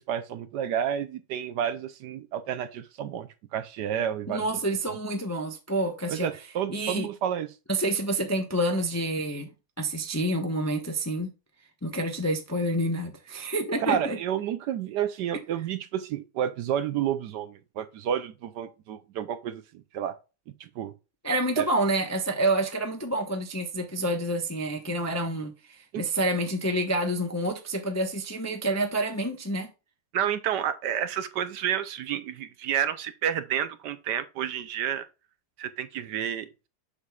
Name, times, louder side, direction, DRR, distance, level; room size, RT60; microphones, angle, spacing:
voice 1, 0.0-4.5 6.1-7.5 13.8-19.6 19.9-20.2 20.6-20.9 21.6-21.7 25.9-26.0 30.1-35.1 35.6-36.7, right 9 dB, 70° right, 1.2 m, -30 dB
voice 2, 4.3-6.3 6.7-7.1 7.7-9.5 9.8-11.3 11.8-14.2 21.2-29.7, right 1 dB, 15° left, 0.5 m, -28 dB
7.4 x 6.5 x 2.4 m
omnidirectional pair, 2.0 m